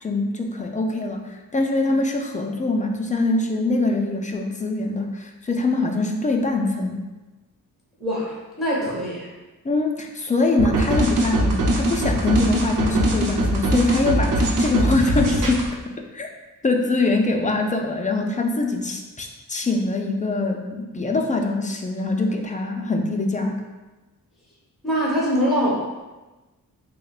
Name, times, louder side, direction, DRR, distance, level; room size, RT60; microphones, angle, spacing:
voice 1, 0.0-7.1 9.6-15.7 16.1-16.3 16.6-23.6, left 2 dB, 20° left, 3 dB, 0.4 m, -23 dB
voice 2, 8.0-9.3 24.8-25.8, equal, ahead, -6 dB, 1.1 m, -23 dB
sound 1, 10.6-15.7, right 1 dB, 60° right, 0.7 m, -22 dB
6.4 x 2.1 x 2.4 m, 1.1 s
wide cardioid pair, 100°, 35 cm